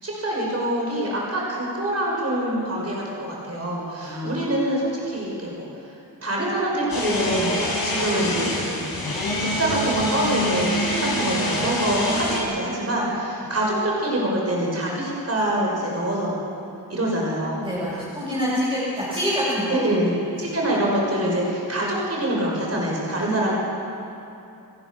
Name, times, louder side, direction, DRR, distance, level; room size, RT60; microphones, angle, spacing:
voice 1, 0.0-5.7 6.2-7.5 7.8-8.8 9.4-17.7 19.7-20.1 20.4-23.5, right 1 dB, 40° right, -3 dB, 5.9 m, -25 dB
voice 2, 4.0-4.4 13.4-13.5 17.6-19.9 20.4-20.5, equal, 15° right, -9 dB, 7.0 m, -26 dB
sound 1, 6.9-12.4, left 1 dB, 70° left, 5.3 m, -25 dB
29.0 x 14.5 x 6.4 m, 2.8 s
wide cardioid pair, 80°, 37 cm